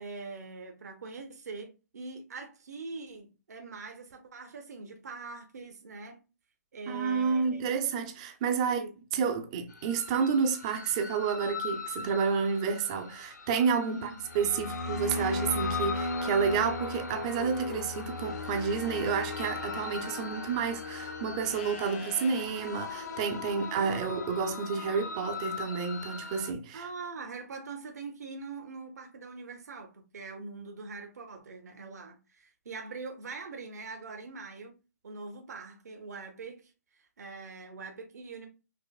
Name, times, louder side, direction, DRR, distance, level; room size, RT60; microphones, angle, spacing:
voice 1, 0.0-6.2 6.7-7.6 8.6-9.3 13.9-14.2 23.4-23.8 26.7-34.8 35.0-36.7 37.0-38.5, right 4 dB, 70° right, 0.8 m, -43 dB
voice 2, 6.9-8.8 9.1-26.9, right 6 dB, 25° right, 0.4 m, -30 dB
sound 1, 9.7-26.5, left 3 dB, 90° left, 0.8 m, -37 dB
Livestock farm animals working animals, 21.4-22.5 25.3-26.3, left 7 dB, 40° left, 0.4 m, -47 dB
5.3 x 2.1 x 2.3 m
hypercardioid pair, 160°, 9 cm